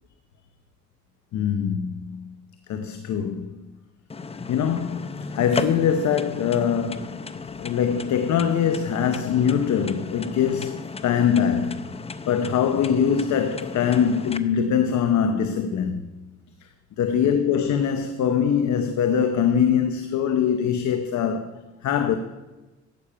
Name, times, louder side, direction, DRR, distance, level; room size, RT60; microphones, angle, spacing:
voice 1, 1.3-2.2 2.7-3.5 4.5-7.2 7.6-11.8 12.3-16.0 17.0-21.5 21.8-22.1, left 8 dB, 75° left, 0.8 m, -23 dB
sound 1, 4.1-14.4, left 4 dB, 20° left, 0.6 m, -35 dB
12.0 x 8.8 x 5.6 m
cardioid pair, 95°, 29 cm